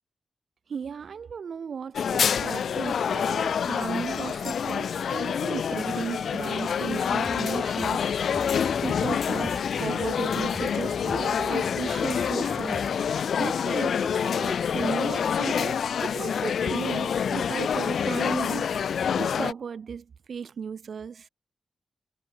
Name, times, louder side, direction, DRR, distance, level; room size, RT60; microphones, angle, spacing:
voice 1, 0.7-8.5 8.8-21.3, right 6 dB, 60° right, 0.4 m, -36 dB
sound 1, 1.9-19.5, left 7 dB, 75° left, 0.3 m, -27 dB
sound 2, 7.0-13.1, right 1 dB, 5° right, 1.4 m, -43 dB
wide cardioid pair, 160°, 0 cm